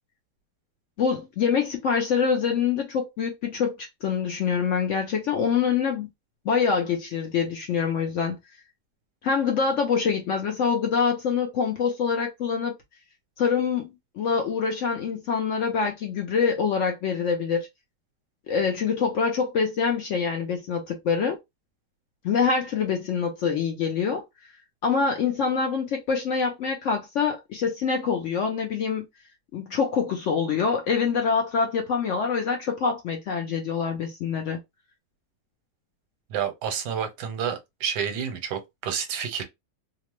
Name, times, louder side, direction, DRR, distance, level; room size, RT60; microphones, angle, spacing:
voice 1, 1.0-6.1 6.4-8.4 9.2-12.7 13.4-17.7 18.5-21.4 22.2-24.2 24.8-29.1 29.5-34.6, left 6 dB, 75° left, 0.6 m, -25 dB
voice 2, 36.3-39.4, right 8 dB, 80° right, 1.3 m, -29 dB
2.8 x 2.0 x 2.9 m
omnidirectional pair, 1.9 m